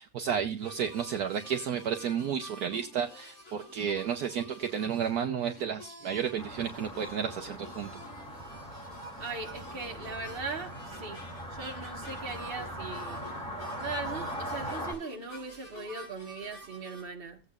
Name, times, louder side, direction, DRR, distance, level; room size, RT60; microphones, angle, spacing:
voice 1, 0.0-8.0, right 8 dB, 65° right, 1.2 m, -32 dB
sound 1, 0.6-17.0, equal, 60° left, 4.8 m, -49 dB
sound 2, 6.4-14.9, equal, 5° left, 2.9 m, -40 dB
voice 2, 9.2-13.2 13.8-17.4, right 4 dB, 35° right, 1.6 m, -39 dB
17.0 x 8.3 x 2.4 m
omnidirectional pair, 1.9 m